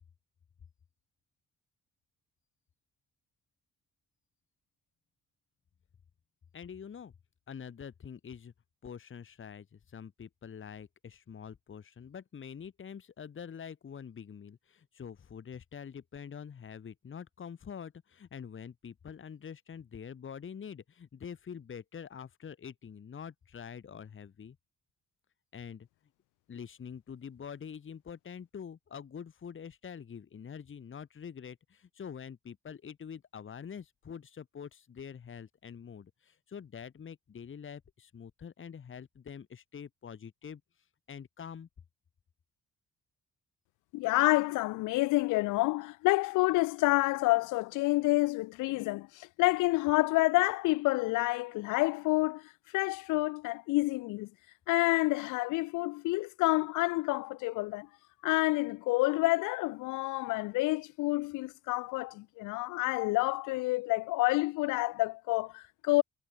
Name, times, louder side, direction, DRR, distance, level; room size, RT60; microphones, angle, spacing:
voice 1, 6.5-7.1 7.5-8.5 8.8-24.6 25.5-25.9 26.5-40.6 41.1-41.7, left 7 dB, 40° left, 1.8 m, -45 dB
voice 2, 43.9-52.4 52.7-54.3 54.7-57.9 58.2-66.0, left 21 dB, 90° left, 0.5 m, -28 dB
cardioid pair, 90°, 30 cm